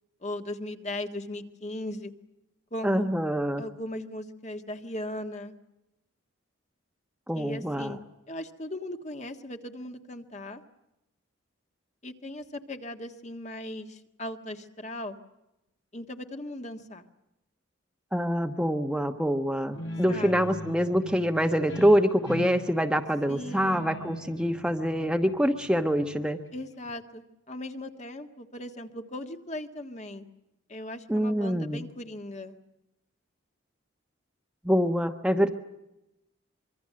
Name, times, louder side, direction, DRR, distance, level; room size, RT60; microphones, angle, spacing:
voice 1, 0.2-2.1 2.7-3.1 3.6-5.5 7.3-8.0 8.3-10.6 12.0-15.2 15.9-17.1 20.1-20.5 23.3-23.9 26.5-30.3 30.7-32.6, left 1 dB, 35° left, 6 dB, 1.6 m, -38 dB
voice 2, 2.8-3.6 7.3-8.0 18.1-26.4 31.1-31.8 34.6-35.5, equal, 5° right, 5 dB, 1.1 m, -25 dB
Guitar, 19.7-26.9, left 1 dB, 85° left, 5.0 m, -41 dB
25.5 x 23.5 x 7.6 m, 0.91 s
head